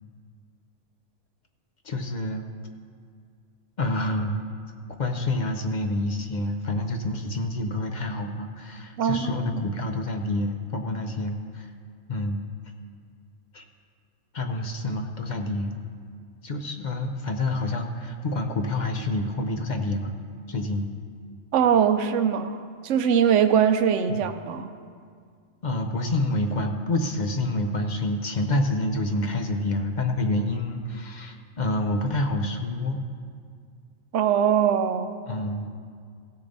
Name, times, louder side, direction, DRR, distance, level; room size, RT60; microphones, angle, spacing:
voice 1, 1.8-2.4 3.8-4.5 5.0-11.7 12.1-12.4 13.5-13.6 14.3-15.8 16.4-20.1 20.5-20.9 24.2-24.3 25.6-33.0 35.3-35.7, left 1 dB, 45° left, 4 dB, 0.7 m, -28 dB
voice 2, 9.0-9.6 21.5-24.7 34.1-35.1, right 8 dB, 70° right, 9 dB, 0.9 m, -22 dB
16.5 x 6.8 x 4.0 m, 2.2 s
omnidirectional pair, 1.4 m